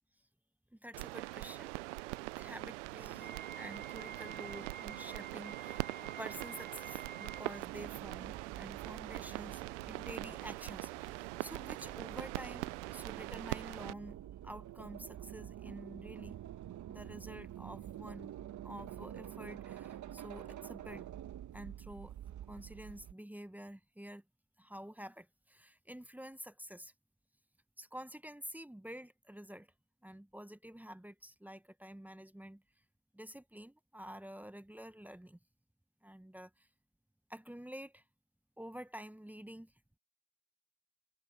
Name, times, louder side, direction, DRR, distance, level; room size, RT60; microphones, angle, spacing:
voice 1, 0.7-1.7 2.4-14.2 14.4-16.4 16.9-18.3 18.6-21.1 21.5-22.1 22.5-24.2 24.6-26.9 27.8-29.7 30.0-32.6 33.1-35.4 36.0-36.7 37.3-38.0 38.6-39.7, equal, 5° right, 1.4 m, -49 dB
sound 1, 0.9-13.9, right 23 dB, 85° right, 0.5 m, -42 dB
Wind instrument woodwind instrument, 3.1-7.6, right 6 dB, 30° right, 2.2 m, -49 dB
sound 2, 7.3-23.1, right 11 dB, 55° right, 1.8 m, -48 dB
hypercardioid pair, 60°, 35 cm